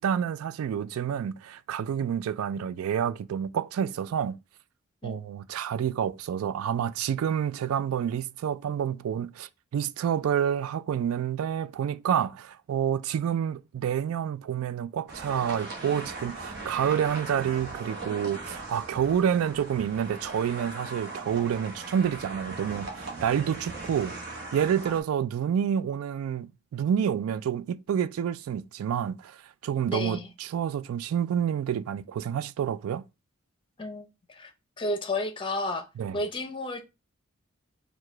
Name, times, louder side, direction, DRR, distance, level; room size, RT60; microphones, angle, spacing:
voice 1, 0.0-4.4 5.0-24.1 24.5-29.4 29.6-33.0 36.0-36.2, right 8 dB, 85° right, 0.3 m, -28 dB
sound 1, 15.1-25.0, right 3 dB, 50° right, 1.0 m, -39 dB
voice 2, 29.9-30.3 33.8-34.5 34.8-35.9 36.1-36.8, left 2 dB, 25° left, 0.6 m, -32 dB
4.7 x 2.3 x 4.4 m
head